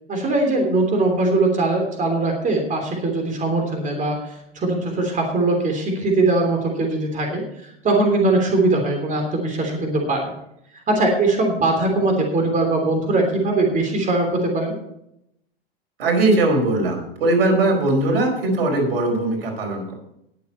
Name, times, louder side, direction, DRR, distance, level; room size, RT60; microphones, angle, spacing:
voice 1, 0.1-10.3 10.9-14.7, right 2 dB, 25° right, 3 dB, 3.2 m, -21 dB
voice 2, 16.0-19.9, right 2 dB, 70° right, 2 dB, 4.6 m, -20 dB
20.0 x 7.5 x 4.3 m, 0.78 s
hypercardioid pair, 90°, 30 cm